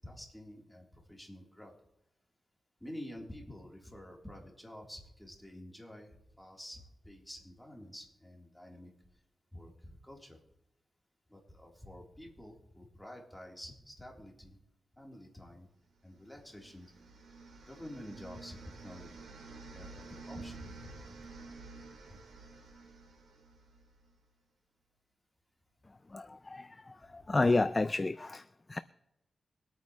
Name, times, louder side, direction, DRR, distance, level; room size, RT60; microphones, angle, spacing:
voice 1, 0.0-1.7 2.8-8.9 9.5-10.4 11.3-14.6 15.0-15.7 16.0-16.9 17.6-19.2 19.7-21.3 22.1-22.2 27.2-27.3, left 1 dB, 5° left, 3.6 m, -49 dB
sound 1, 16.1-24.1, right 3 dB, 85° right, 2.4 m, -51 dB
voice 2, 26.1-28.8, left 3 dB, 30° left, 0.4 m, -31 dB
24.0 x 9.2 x 3.2 m
cardioid pair, 70°, 0 cm